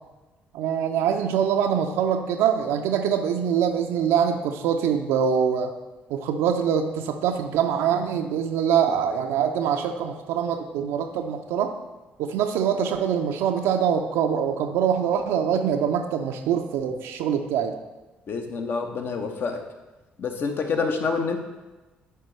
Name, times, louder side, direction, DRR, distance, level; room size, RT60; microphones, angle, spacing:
voice 1, 0.5-5.7 6.1-11.7 12.2-17.8, right 8 dB, 60° right, 4 dB, 0.5 m, -24 dB
voice 2, 18.3-19.6 20.2-21.4, left 4 dB, 45° left, 5 dB, 0.8 m, -27 dB
11.0 x 4.5 x 3.2 m, 1.1 s
figure-of-eight pair, 45°, 5 cm